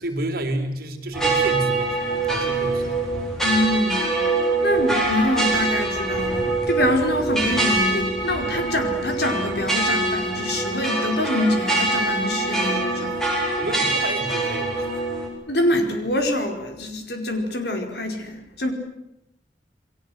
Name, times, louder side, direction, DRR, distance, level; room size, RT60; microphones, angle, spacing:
voice 1, 0.0-3.0 13.6-15.0, right 1 dB, 60° right, 5 dB, 3.9 m, -30 dB
sound 1, 1.1-15.3, right 2 dB, 5° left, 7.7 m, -24 dB
voice 2, 3.4-4.1 4.6-13.3 15.5-18.7, left 1 dB, 65° left, 5 dB, 4.9 m, -25 dB
29.0 x 22.0 x 8.0 m, 0.88 s
head